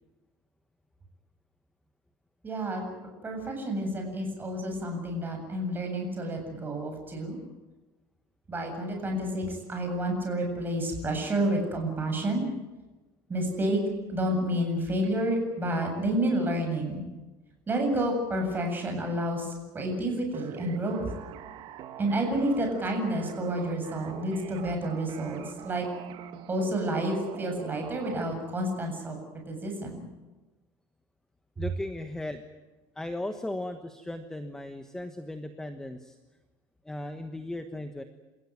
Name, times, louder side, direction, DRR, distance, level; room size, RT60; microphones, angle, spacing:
voice 1, 2.4-2.8 3.2-7.4 8.5-12.4 13.3-13.8 14.1-17.0 17.7-21.1 22.0-25.8 26.5-29.2 29.5-30.0, right 1 dB, 20° right, 3 dB, 7.7 m, -29 dB
sound 1, 20.3-28.3, right 10 dB, 50° right, 1.7 m, -43 dB
voice 2, 31.6-32.4 33.0-36.2 36.8-38.0, left 1 dB, 5° left, 7 dB, 1.2 m, -36 dB
28.0 x 16.0 x 9.5 m, 1.1 s
cardioid pair, 150°, 11 cm